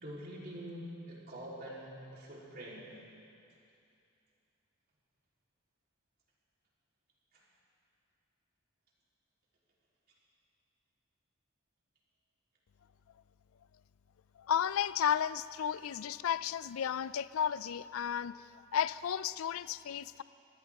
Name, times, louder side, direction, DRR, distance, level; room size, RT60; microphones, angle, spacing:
voice 1, 0.0-2.9 7.3-7.5, equal, 50° right, -5 dB, 3.5 m, -45 dB
voice 2, 14.4-18.4 18.7-20.2, left 8 dB, 80° left, 17 dB, 0.4 m, -33 dB
23.0 x 16.5 x 3.6 m, 2.6 s
head